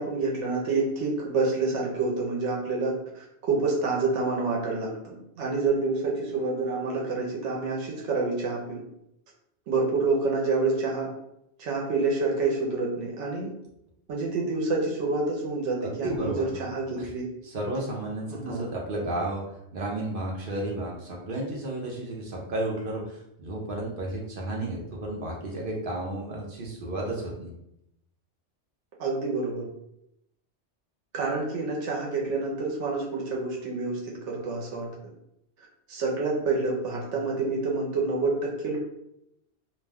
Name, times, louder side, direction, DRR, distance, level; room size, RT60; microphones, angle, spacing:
voice 1, 0.0-8.8 9.7-11.1 11.6-13.5 14.1-17.3 18.3-18.6 29.0-29.7 31.1-34.9 35.9-38.8, right 3 dB, 80° right, -2 dB, 1.0 m, -28 dB
voice 2, 15.8-16.6 17.0-17.1 17.4-27.5, right 1 dB, 55° right, -2 dB, 0.7 m, -32 dB
2.5 x 2.2 x 3.4 m, 0.80 s
omnidirectional pair, 1.2 m